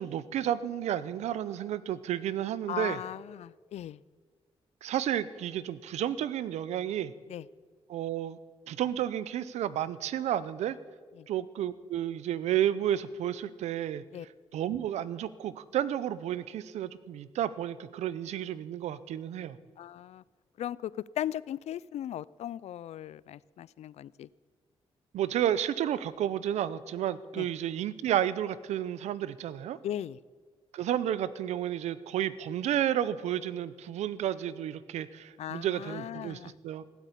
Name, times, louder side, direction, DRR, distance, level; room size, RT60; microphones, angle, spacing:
voice 1, 0.0-3.0 4.8-7.1 7.9-8.4 8.7-10.8 11.3-14.0 14.5-19.6 25.1-29.8 30.7-36.8, right 11 dB, 85° right, 17 dB, 0.7 m, -31 dB
voice 2, 2.7-4.0 7.3-7.4 11.2-11.3 14.1-14.3 19.8-20.2 20.6-24.3 27.3-27.5 29.8-30.2 35.4-36.5, left 11 dB, 75° left, 21 dB, 0.4 m, -37 dB
16.0 x 8.2 x 10.0 m, 1.5 s
cardioid pair, 65°, 11 cm